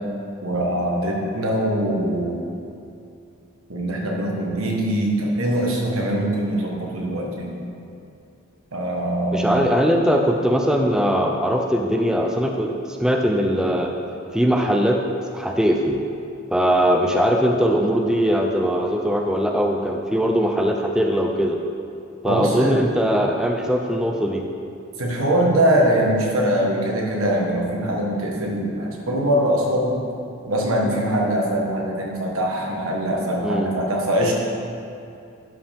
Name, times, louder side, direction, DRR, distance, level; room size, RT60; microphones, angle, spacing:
voice 1, 0.4-2.4 3.7-7.6 8.7-9.7 22.2-22.8 25.0-30.0 30.5-34.3, right 1 dB, 85° right, -1 dB, 1.4 m, -22 dB
voice 2, 9.3-12.7 13.0-13.9 14.3-15.0 15.3-16.0 16.5-21.6 22.2-24.4 33.4-33.7, equal, 5° right, 1 dB, 0.4 m, -20 dB
11.5 x 5.5 x 3.5 m, 2.6 s
head